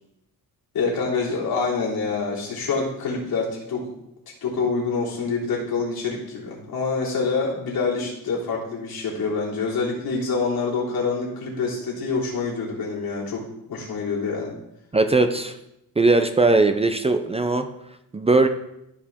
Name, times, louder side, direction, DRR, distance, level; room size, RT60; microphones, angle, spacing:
voice 1, 0.7-3.8 4.4-13.4 13.7-14.5, left 4 dB, 75° left, -4 dB, 3.3 m, -26 dB
voice 2, 14.9-15.5 16.0-17.7 18.1-18.5, right 3 dB, 15° right, 6 dB, 0.5 m, -19 dB
14.5 x 4.9 x 3.6 m, 0.82 s
cardioid pair, 135°, 37 cm